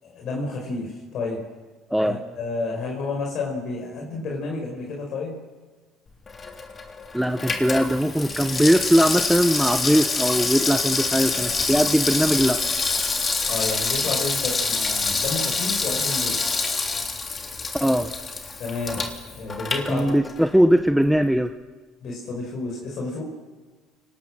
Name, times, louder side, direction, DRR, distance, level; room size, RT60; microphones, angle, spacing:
voice 1, 0.0-1.4 2.0-5.3 6.4-6.5 13.5-16.4 18.6-20.1 22.0-23.2, left 3 dB, 55° left, -1 dB, 5.4 m, -30 dB
Water tap faucet / Sink (filling or washing), 6.3-20.6 20.9-21.0, left 4 dB, 30° left, 3.3 m, -26 dB
voice 2, 7.1-12.6 17.7-18.1 19.9-21.5, equal, ahead, 8 dB, 1.0 m, -20 dB
29.5 x 19.0 x 6.4 m, 1.3 s
supercardioid pair, 80°, 0 cm